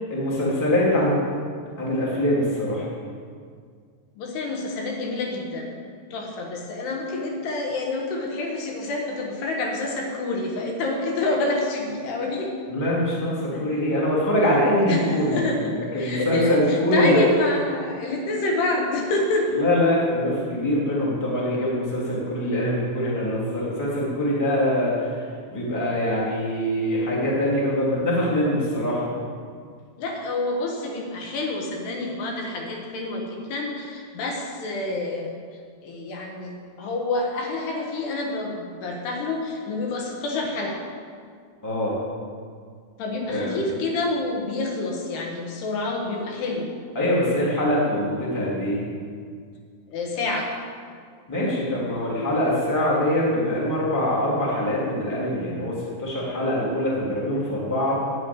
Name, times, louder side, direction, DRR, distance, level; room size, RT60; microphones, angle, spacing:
voice 1, 0.1-1.2 1.8-2.8 12.7-15.4 15.9-17.2 19.5-25.2 25.5-29.1 41.6-42.0 43.3-43.6 46.9-48.8 51.3-58.0, left 1 dB, 5° left, -6 dB, 1.8 m, -23 dB
voice 2, 4.2-5.8 6.1-12.5 13.5-13.6 14.9-19.5 30.0-35.3 35.8-40.8 43.0-46.7 49.9-50.5, left 2 dB, 65° left, 1 dB, 3.2 m, -27 dB
9.5 x 8.7 x 8.9 m, 2.1 s
omnidirectional pair, 5.5 m